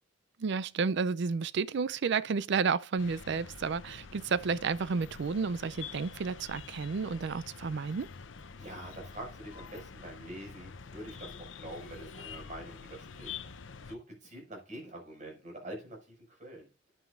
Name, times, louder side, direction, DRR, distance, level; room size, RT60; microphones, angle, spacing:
voice 1, 0.4-8.1, right 5 dB, 65° right, 0.4 m, -31 dB
sound 1, 3.0-13.9, left 5 dB, 80° left, 0.7 m, -47 dB
voice 2, 8.6-13.4 13.9-16.7, right 1 dB, 40° right, 5.6 m, -45 dB
10.0 x 9.2 x 2.5 m
head